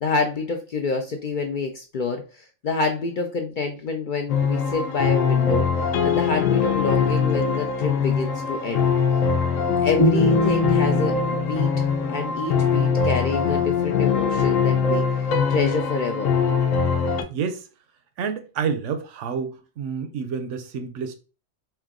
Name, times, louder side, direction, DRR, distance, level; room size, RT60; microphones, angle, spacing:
voice 1, 0.0-5.7 6.0-8.9 9.8-11.7 12.1-16.3, left 4 dB, 60° left, 0.5 m, -27 dB
sound 1, 4.3-17.2, left 6 dB, 85° left, 1.1 m, -22 dB
sound 2, 10.0-13.1, right 1 dB, 10° left, 0.7 m, -25 dB
voice 2, 17.3-17.7 18.2-21.2, right 6 dB, 75° right, 0.9 m, -29 dB
3.4 x 2.8 x 3.6 m
omnidirectional pair, 1.3 m